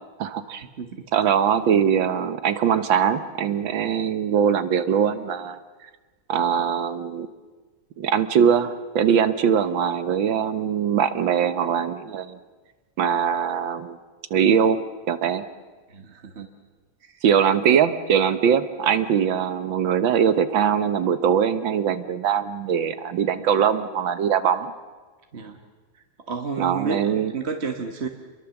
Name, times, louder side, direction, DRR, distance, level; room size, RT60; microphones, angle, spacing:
voice 1, 0.2-0.6 1.1-5.6 6.3-7.3 8.0-12.4 13.0-14.0 14.3-14.8 15.1-15.4 17.2-24.7 26.6-27.3, right 8 dB, 80° right, 11 dB, 1.9 m, -21 dB
voice 2, 15.9-16.5 17.0-17.2 25.3-25.6 26.3-28.1, right 4 dB, 35° right, 4 dB, 1.5 m, -31 dB
27.5 x 22.0 x 7.2 m, 1.3 s
omnidirectional pair, 2.1 m